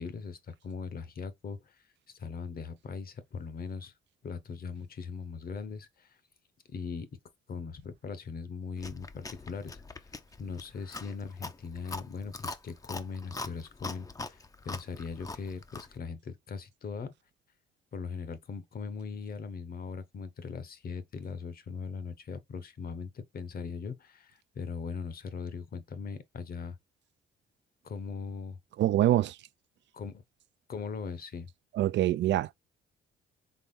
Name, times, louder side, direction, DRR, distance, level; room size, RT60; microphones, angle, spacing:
voice 1, 0.0-1.8 2.1-3.9 4.2-6.2 6.7-7.1 7.5-10.1 10.4-17.1 17.9-26.8 27.8-28.6 29.9-30.2 30.7-31.5, left 5 dB, 50° left, 0.9 m, -40 dB
Chewing mastication, 8.8-16.0, left 3 dB, 15° left, 0.5 m, -43 dB
voice 2, 28.8-29.4 31.7-32.5, right 13 dB, 65° right, 0.4 m, -25 dB
4.1 x 3.5 x 3.7 m
cardioid pair, 90°, 20 cm